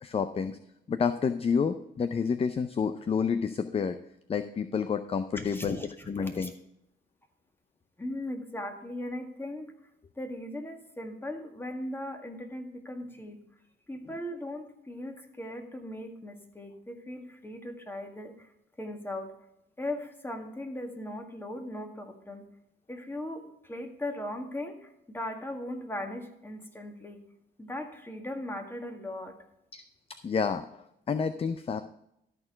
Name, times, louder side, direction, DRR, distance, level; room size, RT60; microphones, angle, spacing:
voice 1, 0.0-0.6 0.9-4.0 4.3-5.8 6.1-6.5 29.7-29.8 30.2-31.8, left 6 dB, 30° left, 10 dB, 0.5 m, -29 dB
voice 2, 5.4-6.5 8.0-9.7 10.2-13.4 13.9-18.5 18.8-19.3 19.8-22.5 22.9-27.2 27.6-29.4, left 1 dB, 10° left, 4 dB, 1.9 m, -38 dB
13.0 x 4.5 x 5.7 m, 0.81 s
cardioid pair, 90°, 20 cm